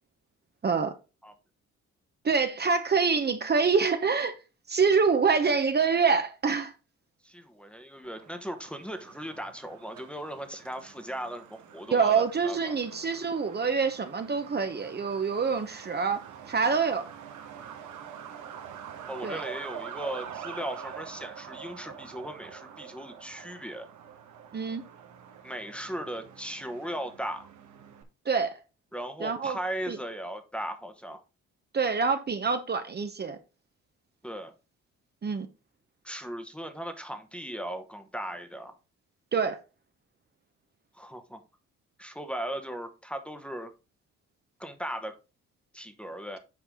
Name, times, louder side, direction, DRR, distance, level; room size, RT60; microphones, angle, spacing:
voice 1, 0.6-0.9 2.2-4.4 4.7-6.7 11.9-17.0 19.2-19.4 24.5-24.8 28.2-28.6 29.2-29.6 29.9-30.0 31.7-33.4 35.2-35.5 39.3-39.6, right 5 dB, 35° right, 1.0 m, -26 dB
voice 2, 7.2-12.8 19.1-23.9 25.4-27.5 28.9-31.2 34.2-34.5 36.0-38.8 40.9-41.4 42.0-43.7 44.6-45.2 45.7-46.4, equal, 5° left, 1.1 m, -37 dB
Truck, 8.0-28.0, right 8 dB, 75° right, 1.4 m, -45 dB
8.4 x 4.7 x 3.7 m
cardioid pair, 90°, 30 cm